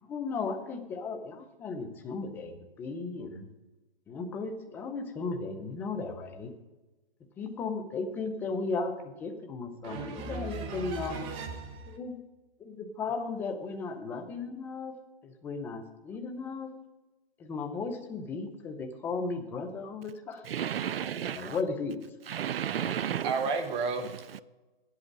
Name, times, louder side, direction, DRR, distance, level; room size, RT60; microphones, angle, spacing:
voice 1, 0.0-3.5 4.1-6.5 7.4-11.3 11.9-12.2 12.6-14.9 15.2-16.7 17.4-20.4 21.3-22.0, left 4 dB, 5° left, 0.6 m, -35 dB
voice 2, 9.8-12.0 23.2-24.1, right 4 dB, 20° right, 1.1 m, -34 dB
voice 3, 20.4-21.6 22.3-23.6 24.0-24.4, right 9 dB, 70° right, 0.5 m, -33 dB
9.4 x 8.1 x 7.4 m
hypercardioid pair, 145°, 30 cm